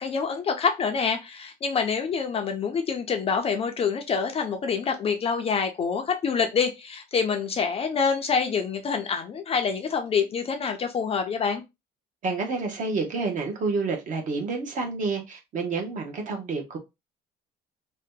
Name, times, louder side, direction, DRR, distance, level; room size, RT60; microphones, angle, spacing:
voice 1, 0.0-11.6, left 5 dB, 30° left, 0.4 m, -26 dB
voice 2, 12.2-16.8, right 4 dB, 40° right, 0.8 m, -29 dB
2.8 x 2.1 x 3.5 m
cardioid pair, 170°, 19 cm